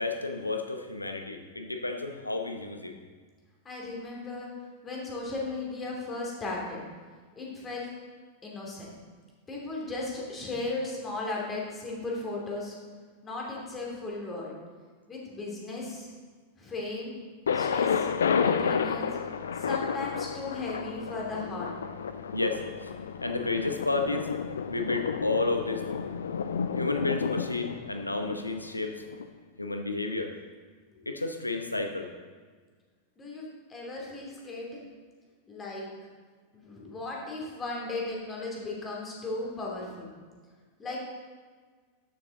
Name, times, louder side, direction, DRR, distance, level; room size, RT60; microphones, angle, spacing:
voice 1, 0.0-3.0 22.3-22.9 23.2-24.3 24.7-25.8 26.7-29.0 29.6-30.3 31.1-32.1, left 3 dB, 85° left, 5 dB, 0.9 m, -31 dB
voice 2, 3.6-4.5 4.8-6.8 7.4-8.0 8.4-8.9 9.5-12.7 13.2-14.5 15.1-16.1 16.6-17.1 17.5-18.1 18.4-19.1 19.6-21.7 33.2-34.8 35.5-35.9 36.5-40.1 40.8-41.0, left 2 dB, 20° left, -3 dB, 2.8 m, -36 dB
Thunder, 17.5-29.3, left 6 dB, 65° left, 0.5 m, -31 dB
12.5 x 6.7 x 3.8 m, 1.5 s
figure-of-eight pair, 90°, 0 cm